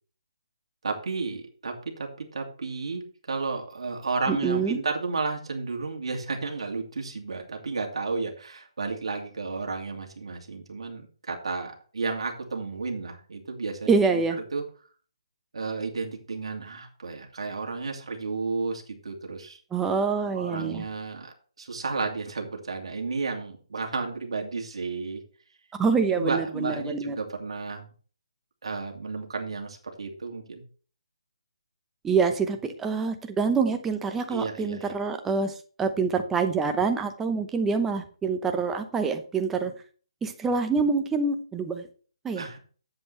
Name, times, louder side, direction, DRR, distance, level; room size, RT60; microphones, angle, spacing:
voice 1, 0.8-14.2 14.5-14.6 15.5-19.6 20.3-25.2 26.1-27.9 28.6-30.6 34.3-34.9 42.4-42.6, right 4 dB, 65° right, 2 dB, 2.5 m, -32 dB
voice 2, 4.3-4.8 13.9-14.4 19.7-20.8 25.7-27.1 32.0-39.7 40.2-41.9 42.2-42.5, right 5 dB, 10° right, 7 dB, 0.9 m, -26 dB
11.0 x 7.9 x 3.3 m, 0.40 s
hypercardioid pair, 155°, 3 cm